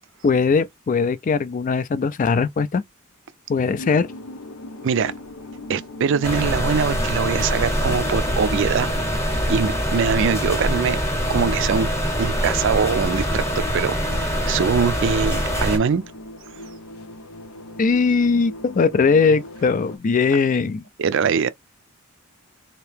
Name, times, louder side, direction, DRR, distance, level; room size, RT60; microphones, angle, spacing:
voice 1, 0.2-2.8 3.5-4.1 17.8-20.8, left 5 dB, 35° left, 0.3 m, -20 dB
sound 1, 3.8-20.0, left 1 dB, 80° left, 0.7 m, -40 dB
voice 2, 5.7-8.9 9.5-11.0 11.3-11.9 12.2-13.4 13.7-16.0 16.5-16.6 21.0-21.5, right 6 dB, 60° right, 0.4 m, -22 dB
sound 2, 6.2-15.8, equal, 15° left, 0.9 m, -24 dB
2.9 x 2.7 x 3.4 m
head